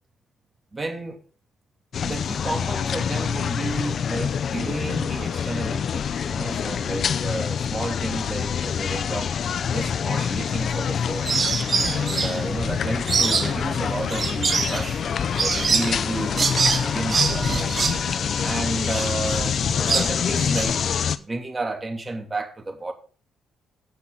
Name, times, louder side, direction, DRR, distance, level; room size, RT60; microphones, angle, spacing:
voice 1, 0.7-1.2 2.0-9.3 9.6-11.3 11.9-15.0 15.4-17.9 18.4-20.8 21.2-22.9, right 2 dB, 25° right, 2.7 m, -32 dB
sound 1, 1.9-21.2, left 7 dB, 55° left, 0.7 m, -26 dB
sound 2, 10.2-10.9 11.2-20.6, right 5 dB, 45° right, 1.9 m, -25 dB
Screaming, 15.7-19.4, left 1 dB, 10° left, 1.2 m, -39 dB
17.0 x 5.9 x 3.9 m
cardioid pair, 90°, 0 cm